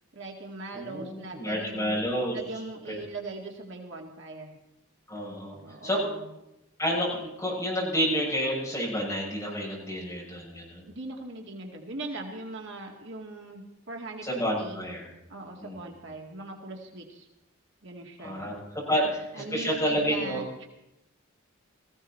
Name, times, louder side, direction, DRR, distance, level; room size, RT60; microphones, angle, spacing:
voice 1, 0.1-2.0 2.3-4.6 5.5-6.3 10.9-14.8 15.3-17.3 17.8-18.4 19.3-20.7, right 2 dB, 55° right, 1 dB, 2.0 m, -40 dB
voice 2, 0.7-2.4 2.9-3.0 5.1-5.6 5.8-6.0 6.8-10.8 14.2-15.1 15.6-15.8 18.2-18.6 18.9-19.1 19.5-20.4, equal, 15° left, -5 dB, 7.5 m, -29 dB
19.0 x 15.5 x 4.5 m, 0.89 s
head